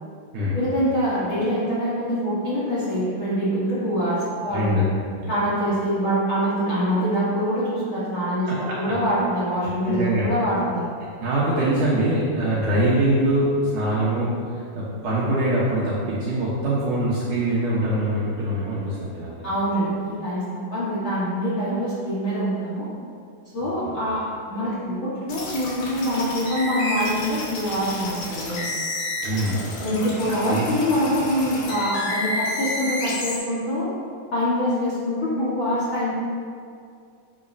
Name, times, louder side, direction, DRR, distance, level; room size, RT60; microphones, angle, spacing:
voice 1, 0.5-4.8 5.3-10.9 19.4-20.4 20.7-22.9 23.5-24.2 24.5-28.6 29.8-33.9 34.3-36.1, equal, 85° left, -10 dB, 1.1 m, -24 dB
voice 2, 4.5-4.8 5.2-5.3 8.5-8.6 8.9-9.0 9.8-10.3 11.0-19.3 23.6-24.0 29.2-29.7 30.4-30.6, right 1 dB, 70° right, -7 dB, 2.0 m, -23 dB
sound 1, 25.3-33.4, left 2 dB, 60° left, 2.5 m, -30 dB
10.5 x 7.8 x 2.7 m, 2.3 s
omnidirectional pair, 5.0 m